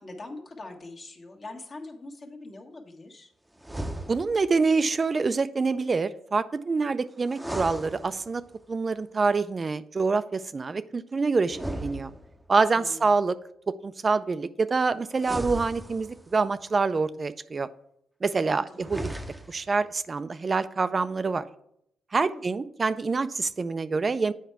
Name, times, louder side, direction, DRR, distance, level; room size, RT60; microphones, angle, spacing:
voice 1, 0.0-3.3 12.7-13.1 18.4-18.8 22.2-22.4, left 2 dB, 45° left, 1 dB, 1.5 m, -43 dB
sound 1, 3.6-4.6 7.3-8.6 11.5-12.7 15.1-16.4 18.7-19.7, right 1 dB, 10° right, 0.7 m, -36 dB
voice 2, 4.1-8.4 8.7-12.1 12.5-13.4 13.7-17.7 18.2-19.1 19.5-21.4 22.1-24.3, right 4 dB, 35° right, 12 dB, 0.3 m, -26 dB
8.0 x 4.6 x 4.6 m, 0.73 s
cardioid pair, 70°, 0 cm